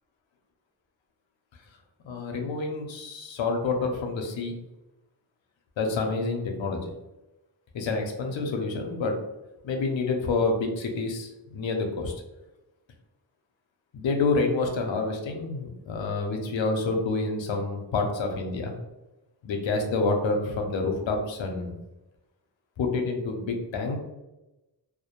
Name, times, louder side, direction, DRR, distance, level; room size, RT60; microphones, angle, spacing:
voice 1, 2.0-4.6 5.8-6.9 7.7-9.2 9.6-12.1 13.9-18.8 19.4-21.7 22.8-24.0, left 3 dB, 90° left, 3 dB, 0.6 m, -28 dB
2.3 x 2.1 x 2.9 m, 1.0 s
wide cardioid pair, 80°, 44 cm